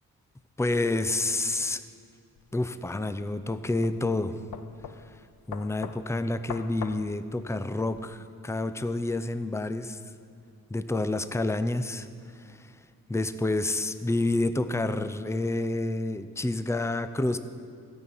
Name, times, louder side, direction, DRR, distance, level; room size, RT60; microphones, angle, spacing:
voice 1, 0.6-1.8 2.5-4.4 5.5-10.0 10.7-12.1 12.4-12.7 13.1-17.4, left 2 dB, 5° left, 11 dB, 0.6 m, -29 dB
sound 1, 2.4-8.0, left 7 dB, 75° left, 0.7 m, -43 dB
13.5 x 6.2 x 9.1 m, 2.2 s
cardioid pair, 55°, 37 cm